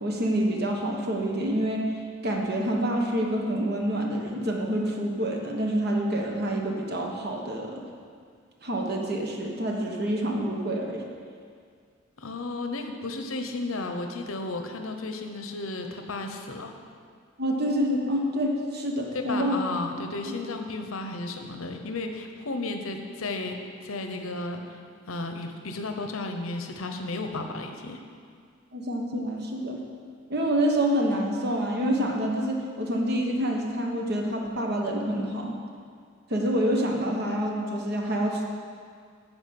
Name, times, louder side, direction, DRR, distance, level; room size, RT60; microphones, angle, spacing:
voice 1, 0.0-1.9 2.2-7.8 8.6-11.0 17.4-19.6 20.2-20.3 28.7-29.8 30.3-35.5 36.3-38.4, right 1 dB, 50° right, 0 dB, 1.3 m, -27 dB
voice 2, 12.2-16.8 19.1-24.8 25.1-28.0, left 2 dB, 85° left, 5 dB, 0.9 m, -33 dB
9.9 x 5.1 x 7.8 m, 2.1 s
head